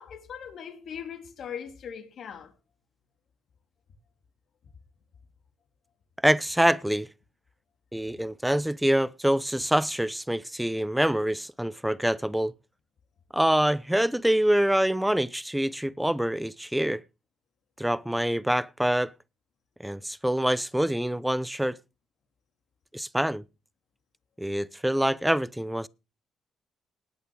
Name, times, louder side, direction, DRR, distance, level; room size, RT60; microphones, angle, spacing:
voice 1, 0.0-2.5, left 8 dB, 60° left, 3.1 m, -40 dB
voice 2, 6.2-7.1 7.9-12.5 13.3-17.0 17.8-19.1 19.8-21.8 22.9-23.4 24.4-25.9, right 1 dB, 5° right, 0.7 m, -25 dB
19.0 x 6.8 x 6.2 m
cardioid pair, 90°, 0 cm